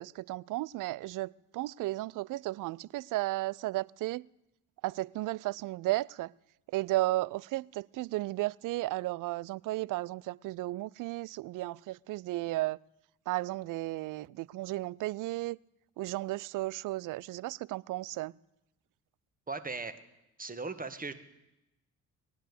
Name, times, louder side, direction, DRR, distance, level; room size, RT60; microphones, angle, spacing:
voice 1, 0.0-4.3 4.8-6.3 6.7-12.8 13.3-15.6 16.0-18.3, right 18 dB, 50° right, 0.5 m, -34 dB
voice 2, 19.5-20.0 20.4-21.1, right 3 dB, 20° right, 1.7 m, -38 dB
19.5 x 10.0 x 6.8 m
hypercardioid pair, 45°, 43 cm